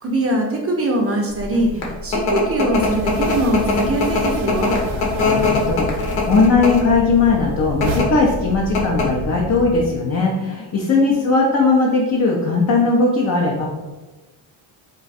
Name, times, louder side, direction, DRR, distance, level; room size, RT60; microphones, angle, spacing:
voice 1, 0.0-4.8 11.1-11.2, right 1 dB, 30° right, 1 dB, 0.5 m, -22 dB
sound 1, 1.0-2.0 2.3-6.7 7.0-8.0, right 4 dB, 75° right, 0.7 m, -35 dB
sound 2, 1.5-6.9 7.7-8.1 8.4-8.5 8.7-9.2, left 3 dB, 75° left, 0.9 m, -21 dB
sound 3, 2.7-9.9, equal, 50° left, 0.9 m, -31 dB
voice 2, 4.9-13.7, left 3 dB, 35° left, -2 dB, 0.5 m, -18 dB
2.5 x 2.3 x 4.0 m, 1.2 s
cardioid pair, 90°, 48 cm